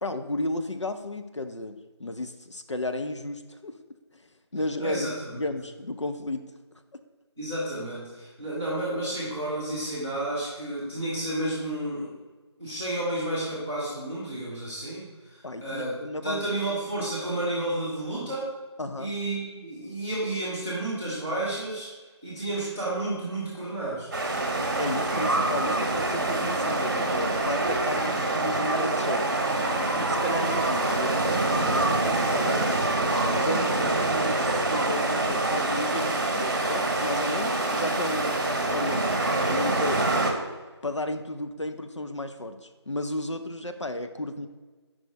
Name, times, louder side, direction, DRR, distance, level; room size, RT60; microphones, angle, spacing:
voice 1, 0.0-3.8 4.1-4.2 4.5-5.1 5.3-6.4 15.4-16.5 18.8-19.1 22.4-22.5 24.5-29.4 30.0-32.8 33.3-38.4 38.7-40.1 40.8-44.5, left 1 dB, 85° left, 7 dB, 0.7 m, -33 dB
voice 2, 4.8-5.4 7.4-12.2 12.6-18.5 19.0-21.9 22.2-24.1, right 1 dB, 5° left, -11 dB, 0.5 m, -31 dB
sound 1, 24.1-40.3, right 2 dB, 40° right, 0.9 m, -25 dB
7.6 x 5.0 x 3.6 m, 1.4 s
figure-of-eight pair, 160°, 15 cm